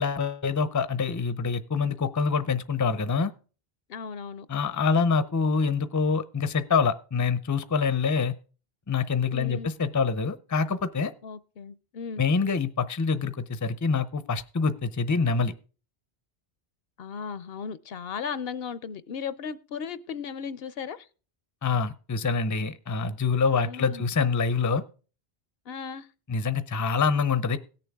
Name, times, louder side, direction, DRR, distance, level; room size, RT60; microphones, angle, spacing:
voice 1, 0.0-3.3 4.5-8.4 8.9-11.1 12.2-15.5 21.6-24.8 26.3-27.6, left 5 dB, 25° left, 0.5 m, -25 dB
voice 2, 3.9-4.5 9.3-9.7 11.2-12.2 17.0-21.1 23.6-24.1 25.7-26.1, left 6 dB, 70° left, 0.9 m, -36 dB
17.5 x 6.9 x 3.5 m
omnidirectional pair, 1.0 m